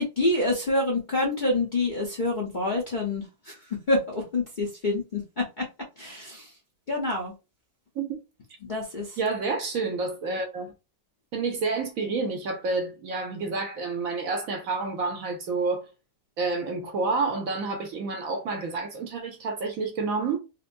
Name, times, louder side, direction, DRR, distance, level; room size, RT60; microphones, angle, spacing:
voice 1, 0.0-3.6 3.9-5.7 6.0-6.5 6.9-7.3 8.6-9.2, left 2 dB, 40° left, 0.7 m, -27 dB
voice 2, 9.2-10.7 11.3-15.8 16.4-20.4, right 4 dB, 65° right, 1.1 m, -29 dB
4.4 x 2.1 x 2.5 m
omnidirectional pair, 1.8 m